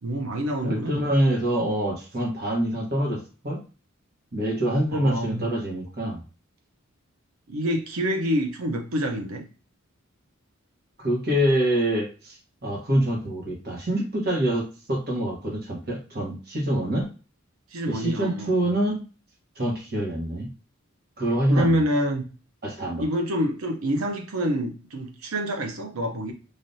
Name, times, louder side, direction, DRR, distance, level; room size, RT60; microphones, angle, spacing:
voice 1, 0.0-1.0 4.9-5.5 7.5-9.4 17.7-18.5 21.5-22.2 23.0-26.3, equal, 80° right, 3 dB, 0.7 m, -27 dB
voice 2, 0.6-3.6 4.3-6.2 11.0-17.1 17.9-19.0 19.6-20.5 21.2-21.8 22.6-23.0, right 1 dB, 45° right, -1 dB, 1.2 m, -25 dB
3.3 x 2.6 x 2.7 m, 0.35 s
head